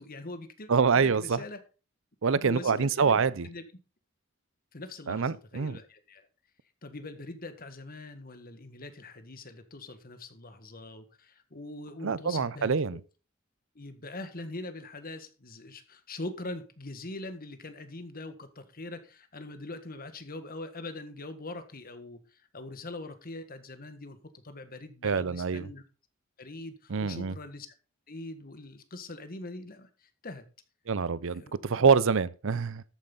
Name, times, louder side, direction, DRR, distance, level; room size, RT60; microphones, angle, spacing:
voice 1, 0.0-1.6 2.4-3.6 4.7-6.3 6.8-12.7 13.7-24.2 24.4-25.8 26.4-27.7 28.1-30.4 31.3-31.6, left 2 dB, 45° left, 1.6 m, -42 dB
voice 2, 0.7-1.4 2.2-3.5 5.1-5.8 12.0-13.0 25.0-25.7 26.9-27.3 30.9-32.8, right 5 dB, 65° right, 0.6 m, -26 dB
13.5 x 9.2 x 4.0 m
head